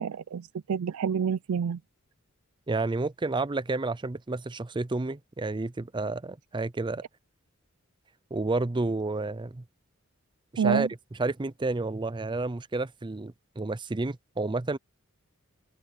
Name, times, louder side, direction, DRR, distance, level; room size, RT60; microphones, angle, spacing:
voice 1, 0.0-1.8 10.6-10.9, right 7 dB, 85° right, 0.4 m, -28 dB
voice 2, 2.7-7.0 8.3-9.6 10.5-10.9 11.2-14.8, right 3 dB, 20° right, 0.5 m, -30 dB
head